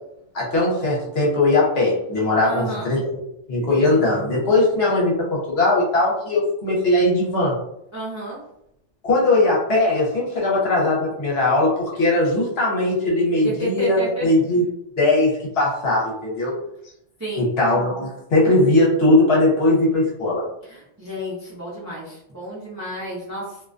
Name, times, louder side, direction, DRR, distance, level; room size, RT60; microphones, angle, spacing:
voice 1, 0.3-3.2 3.5-7.5 9.0-14.6 15.0-16.5 17.4-20.4, left 2 dB, 60° left, -4 dB, 0.9 m, -19 dB
voice 2, 2.4-2.9 7.9-8.4 13.4-14.3 17.2-17.5 20.6-23.6, equal, 25° right, -7 dB, 0.4 m, -30 dB
2.4 x 2.2 x 2.4 m, 0.79 s
omnidirectional pair, 1.3 m